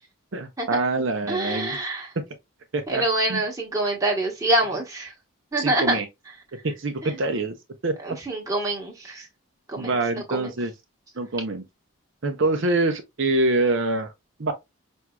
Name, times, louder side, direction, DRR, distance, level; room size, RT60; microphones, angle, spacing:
voice 1, 0.3-1.8 2.7-3.0 3.3-3.4 5.6-6.1 6.8-7.5 7.8-8.2 9.8-10.7 11.2-11.6 12.2-14.1 14.4-14.5, right 2 dB, 55° right, 0.6 m, -25 dB
voice 2, 1.3-2.1 2.9-5.1 5.5-6.0 7.0-7.1 8.0-9.3 9.7-10.5, right 1 dB, 15° right, 1.1 m, -26 dB
6.0 x 2.6 x 2.2 m
head